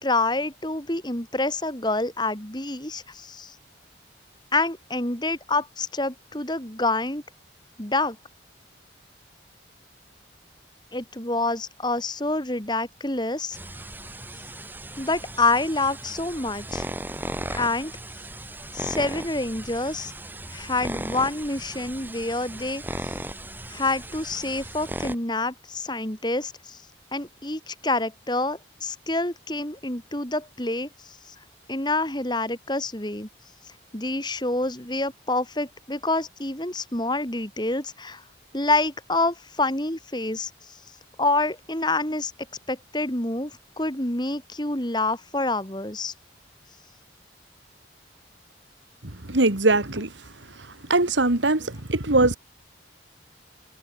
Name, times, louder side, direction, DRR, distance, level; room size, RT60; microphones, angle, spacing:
voice 1, 0.0-3.5 4.5-7.2 7.8-8.2 10.9-13.6 15.0-16.9 17.5-17.9 18.7-20.1 20.5-22.8 23.7-26.8 27.1-30.9 31.7-33.3 33.9-38.2 38.5-40.5 41.2-42.3 42.7-43.5 43.8-46.1, left 2 dB, 25° left, 3.2 m, -27 dB
sound 1, 13.5-25.1, right 1 dB, 10° right, 6.0 m, -37 dB
voice 2, 49.3-50.1 50.9-52.3, right 2 dB, 80° right, 2.4 m, -21 dB
head